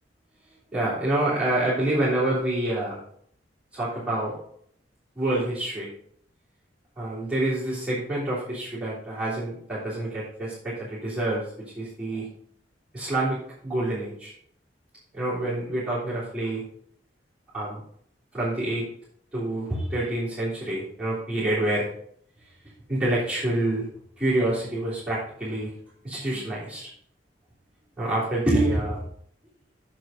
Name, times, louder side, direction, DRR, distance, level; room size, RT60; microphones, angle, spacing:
voice 1, 0.7-3.0 3.7-4.4 5.1-5.9 7.0-11.5 11.8-12.3 12.9-13.4 13.6-14.3 15.1-16.6 17.5-17.8 18.3-18.9 19.3-21.9 22.9-23.9 24.2-25.7 26.0-26.9 28.0-29.1, right 1 dB, 5° right, -11 dB, 3.4 m, -27 dB
7.8 x 7.6 x 4.0 m, 0.64 s
head